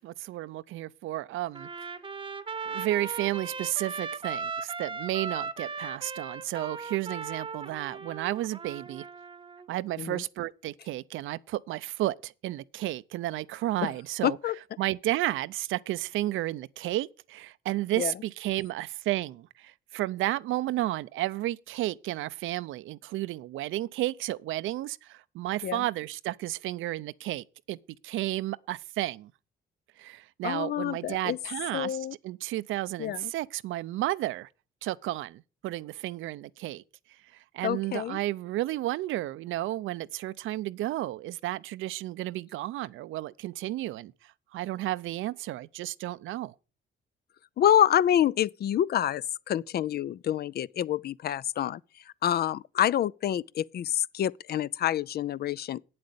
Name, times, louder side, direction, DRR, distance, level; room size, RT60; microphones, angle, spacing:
voice 1, 0.0-1.7 2.6-9.1 9.7-14.4 14.8-27.8 28.0-29.3 30.0-34.5 34.8-36.8 37.5-44.1 44.5-46.5, right 15 dB, 85° right, 0.5 m, -32 dB
Trumpet, 1.5-9.7, right 5 dB, 25° right, 0.9 m, -38 dB
voice 2, 14.2-14.6 17.9-18.1 25.6-25.8 30.4-31.4 31.7-32.1 33.0-33.3 37.6-38.2 47.6-55.8, left 10 dB, 55° left, 0.4 m, -27 dB
8.8 x 7.6 x 6.9 m
cardioid pair, 90°, 20 cm